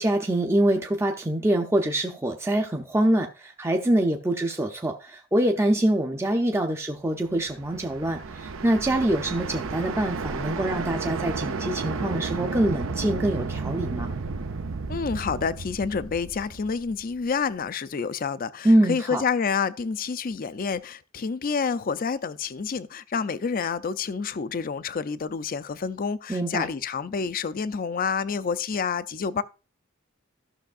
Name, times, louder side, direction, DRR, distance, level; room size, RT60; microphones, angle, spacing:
voice 1, 0.0-14.1 18.6-19.2 26.3-26.7, right 1 dB, 15° right, 0.6 m, -24 dB
sound 1, 7.3-17.3, right 4 dB, 70° right, 0.6 m, -32 dB
voice 2, 14.9-29.4, left 5 dB, 45° left, 0.4 m, -28 dB
14.0 x 6.2 x 2.5 m
head